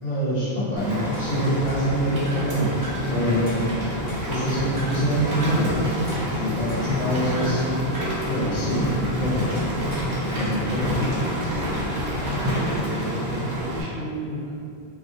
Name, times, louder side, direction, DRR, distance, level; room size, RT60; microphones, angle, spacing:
voice 1, 0.0-2.7 3.1-3.7 4.3-5.9 6.3-7.9 8.2-8.9 9.2-9.5 10.3-10.9, equal, 45° left, -10 dB, 0.7 m, -25 dB
Rain, 0.8-13.8, equal, 90° right, 0.9 m, -27 dB
sound 1, 1.1-2.6 2.8-3.2 3.5-4.4 4.8-5.1 5.4-5.7 6.1-7.1 7.4-7.7 7.9-8.3 9.6-10.2 10.4-11.9, right 1 dB, 10° right, 0.6 m, -42 dB
voice 2, 12.6-14.5, right 1 dB, 60° right, -8 dB, 0.7 m, -33 dB
2.3 x 2.0 x 2.8 m, 2.5 s
omnidirectional pair, 1.1 m